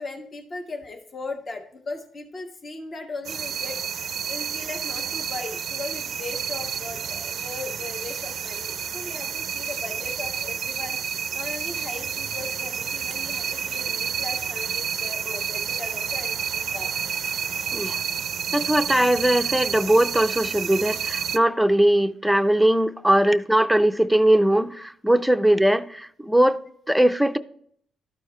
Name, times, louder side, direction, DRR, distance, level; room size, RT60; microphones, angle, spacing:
voice 1, 0.0-3.8 4.3-11.0 11.3-16.9, left 3 dB, 40° left, 1.3 m, -38 dB
sound 1, 3.2-21.4, right 7 dB, 60° right, 0.4 m, -30 dB
voice 2, 18.5-26.6 26.9-27.4, right 1 dB, 5° right, 0.5 m, -20 dB
13.0 x 4.6 x 3.2 m
cardioid pair, 90°, 0 cm